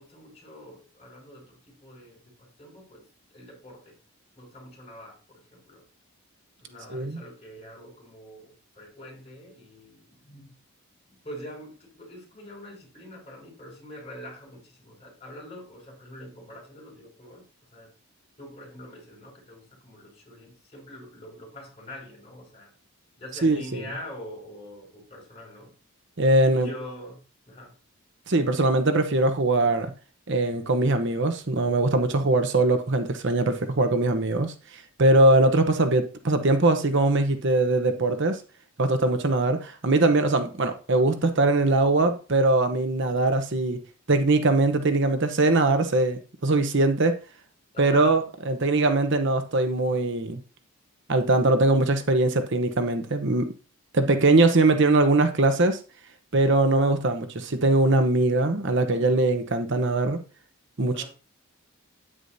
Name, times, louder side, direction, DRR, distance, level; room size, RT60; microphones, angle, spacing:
voice 1, 0.0-3.1 3.3-4.0 4.4-5.9 6.6-10.5 11.1-17.4 17.7-17.9 18.4-22.7 23.2-25.7 26.4-27.7 47.7-48.2 60.9-61.1, left 1 dB, 30° left, 5.7 m, -44 dB
voice 2, 6.9-7.2 23.4-23.8 26.2-26.7 28.3-29.9 30.3-38.4 38.8-43.8 44.1-47.2 47.8-50.4 51.1-53.5 53.9-55.8 56.3-60.2 60.8-61.0, right 2 dB, 55° right, 0.9 m, -22 dB
9.8 x 9.4 x 2.7 m
head